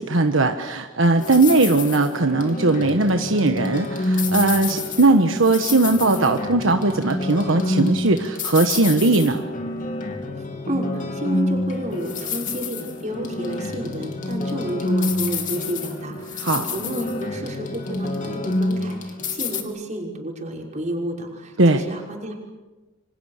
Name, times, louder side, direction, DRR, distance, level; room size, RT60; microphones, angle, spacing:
voice 1, 0.0-9.4 16.4-16.6 21.6-21.8, right 2 dB, 75° right, 5 dB, 1.4 m, -19 dB
sound 1, 1.2-19.6, left 2 dB, 40° left, 2.9 m, -28 dB
voice 2, 10.7-16.4 16.7-22.3, right 1 dB, 35° right, 0 dB, 5.8 m, -31 dB
28.5 x 26.0 x 6.7 m, 1.2 s
head